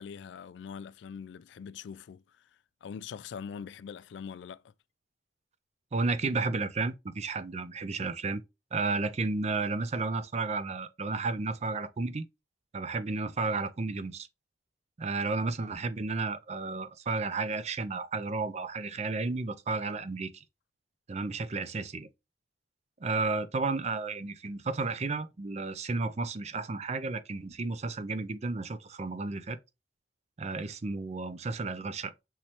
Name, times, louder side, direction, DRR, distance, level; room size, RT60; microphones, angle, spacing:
voice 1, 0.0-2.5 2.8-4.7, left 6 dB, 75° left, 0.3 m, -43 dB
voice 2, 5.9-8.4 8.7-12.3 12.7-14.3 15.0-20.4 21.1-22.1 23.0-29.6 30.4-32.1, right 3 dB, 35° right, 0.5 m, -32 dB
5.7 x 3.1 x 2.8 m
head